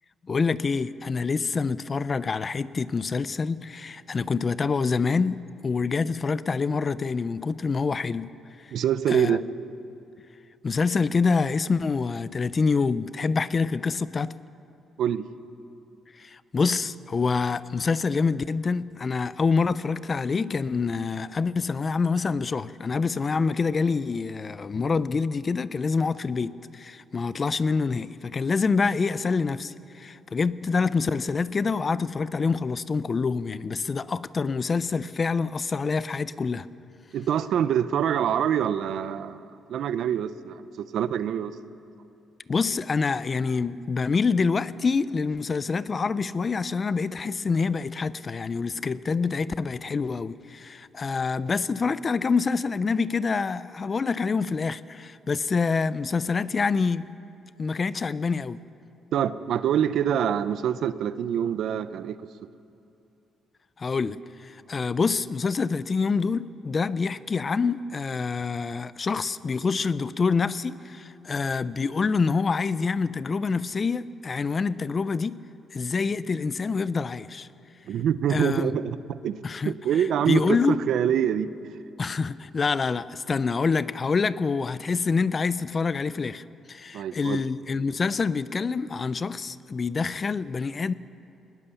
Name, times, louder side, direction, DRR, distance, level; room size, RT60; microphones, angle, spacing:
voice 1, 0.3-8.3 8.6-8.7 9.1-9.4 10.6-14.3 16.2-36.7 42.5-57.1 57.6-58.6 63.8-75.4 75.7-77.5 78.3-78.7 79.4-79.7 80.3-80.8 82.0-90.9, left 4 dB, 35° left, 0.5 m, -26 dB
voice 2, 8.7-9.4 15.0-15.2 37.1-41.5 59.1-62.2 77.9-79.4 79.6-81.7 86.9-87.4, right 9 dB, 70° right, 0.7 m, -25 dB
20.0 x 18.5 x 7.1 m
cardioid pair, 90°, 0 cm